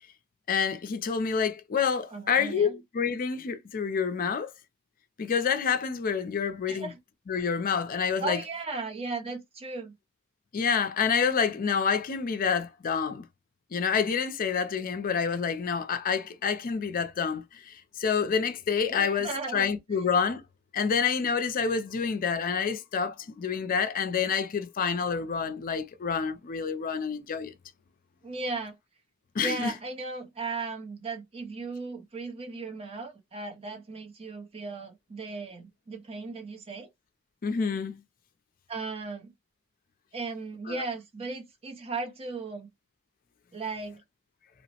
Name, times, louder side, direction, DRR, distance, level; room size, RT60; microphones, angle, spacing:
voice 1, 0.5-4.5 5.2-6.9 7.3-8.4 10.5-13.3 13.7-20.4 20.7-27.5 29.3-29.7 37.4-38.0 40.7-40.8, left 6 dB, 40° left, 0.4 m, -28 dB
voice 2, 2.1-2.8 6.7-7.0 8.2-9.9 18.9-20.0 28.2-28.8 29.4-36.9 38.7-39.3 40.1-42.7 43.5-44.0, right 3 dB, 25° right, 0.5 m, -36 dB
3.0 x 2.0 x 2.8 m
head